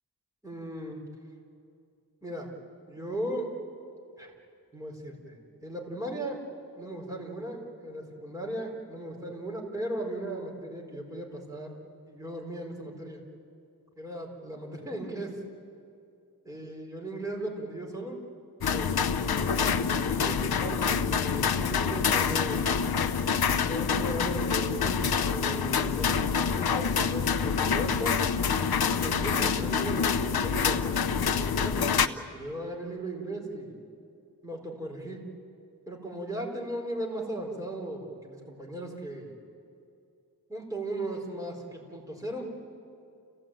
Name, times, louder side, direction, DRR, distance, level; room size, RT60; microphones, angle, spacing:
voice 1, 0.4-1.0 2.2-2.5 2.9-3.5 4.2-4.3 4.7-6.4 6.7-11.7 12.1-13.2 14.0-15.4 16.4-18.2 18.6-22.7 23.7-25.0 25.3-28.2 29.0-30.9 31.2-31.9 32.2-33.8 34.4-35.2 35.9-39.3 40.5-42.5, right 1 dB, 10° right, -2 dB, 4.6 m, -37 dB
sound 1, 18.6-32.1, left 6 dB, 65° left, 0.8 m, -26 dB
30.0 x 16.5 x 9.1 m, 2.5 s
wide cardioid pair, 120°, 39 cm